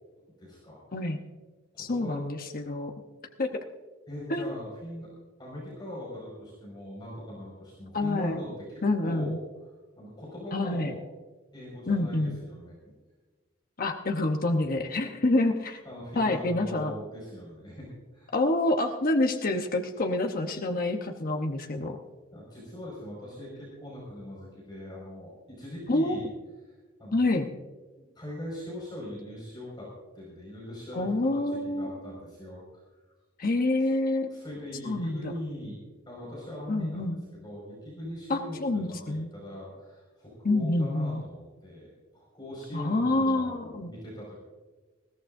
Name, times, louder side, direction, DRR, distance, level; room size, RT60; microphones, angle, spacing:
voice 1, 0.2-0.9 1.7-2.2 4.1-5.1 5.4-8.5 9.0-9.4 10.0-11.0 11.5-12.8 15.8-17.9 18.1-18.3 22.3-26.3 27.0-27.3 28.2-29.9 30.1-32.8 33.8-33.9 34.3-35.8 36.1-37.1 37.4-44.4, left 1 dB, 20° left, -5 dB, 5.3 m, -41 dB
voice 2, 1.8-2.9 3.4-3.6 4.3-4.5 7.9-8.4 8.8-9.4 10.5-10.9 11.9-12.4 13.8-15.8 16.2-17.0 18.3-22.0 25.9-26.1 27.1-27.5 30.9-32.0 33.4-34.3 34.8-35.3 36.7-37.2 38.3-39.3 40.4-41.2 42.7-43.9, left 2 dB, 45° left, 4 dB, 0.9 m, -27 dB
21.0 x 16.5 x 2.6 m, 1.3 s
head